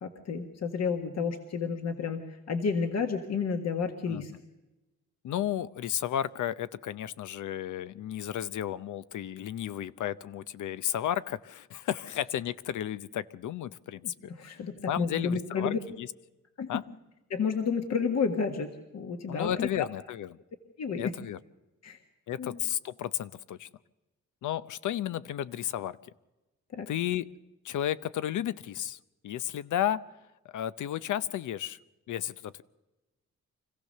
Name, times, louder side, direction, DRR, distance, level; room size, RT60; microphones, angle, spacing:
voice 1, 0.0-2.2 2.5-4.3 14.3-15.8 16.6-16.7 17.3-19.9 20.8-21.0 21.8-22.0 22.4-22.6 26.7-26.9, left 5 dB, 60° left, 5 dB, 1.7 m, -31 dB
voice 2, 4.1-4.4 5.2-14.1 14.5-14.6 14.9-16.1 16.7-16.8 19.3-20.4 21.0-21.4 22.3-23.7 24.4-26.0 26.9-27.3 27.6-30.0 30.5-31.8 32.1-32.6, left 11 dB, 85° left, 15 dB, 0.7 m, -33 dB
25.5 x 15.5 x 6.6 m, 1.1 s
cardioid pair, 115°, 29 cm